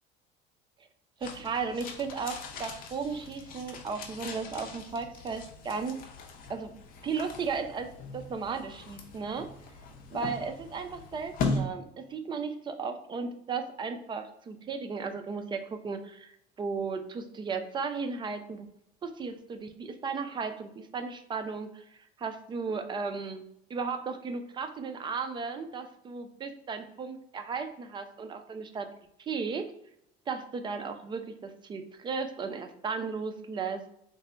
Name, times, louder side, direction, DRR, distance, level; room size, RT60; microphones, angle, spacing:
sound 1, 1.2-11.6, left 3 dB, 50° left, 0.6 m, -39 dB
voice 1, 1.2-6.0 6.5-6.7 7.0-9.5 10.1-18.7 19.0-21.8 22.2-23.4 23.7-28.9 29.2-29.7 30.3-33.8, right 5 dB, 25° right, 7 dB, 0.4 m, -35 dB
3.3 x 2.1 x 3.8 m, 0.76 s
cardioid pair, 120°, 19 cm